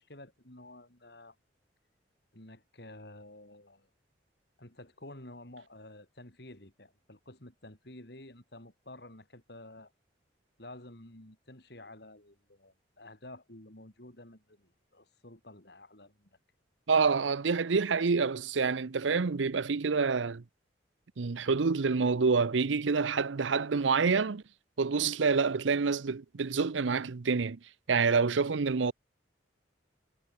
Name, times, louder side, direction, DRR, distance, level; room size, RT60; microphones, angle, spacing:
voice 1, 0.0-1.4 2.3-3.9 4.6-9.9 10.6-16.3, left 1 dB, 60° left, 4.3 m, -51 dB
voice 2, 16.9-20.4 21.2-24.4 24.8-27.6 27.9-28.9, right 5 dB, 90° right, 0.7 m, -27 dB
head